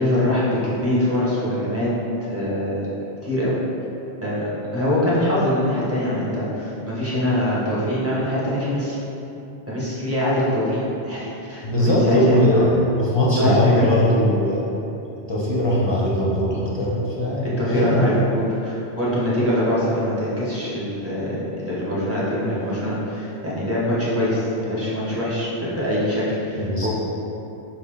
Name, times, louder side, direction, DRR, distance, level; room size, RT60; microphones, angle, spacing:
voice 1, 0.0-1.9 2.3-2.9 3.2-3.5 4.2-4.5 4.7-9.0 9.7-12.6 13.3-13.9 17.4-26.9, left 1 dB, 15° right, -8 dB, 0.9 m, -23 dB
voice 2, 11.6-14.6 15.3-18.1 26.6-26.9, left 1 dB, 35° left, -6 dB, 0.5 m, -20 dB
5.2 x 2.4 x 3.6 m, 2.9 s
omnidirectional pair, 1.1 m